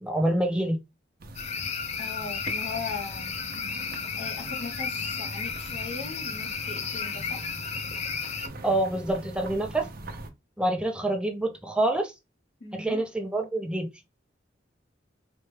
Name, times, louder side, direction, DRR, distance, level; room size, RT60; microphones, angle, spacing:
voice 1, 0.0-0.8 8.6-9.9 10.6-12.1 12.7-13.9, right 1 dB, 5° right, 0.6 m, -26 dB
sound 1, 1.2-10.3, right 2 dB, 55° right, 0.6 m, -42 dB
sound 2, 1.4-8.5, left 6 dB, 35° left, 0.4 m, -33 dB
voice 2, 2.0-3.3 4.1-7.5 12.6-13.0, left 4 dB, 90° left, 1.1 m, -39 dB
4.2 x 2.2 x 3.3 m
head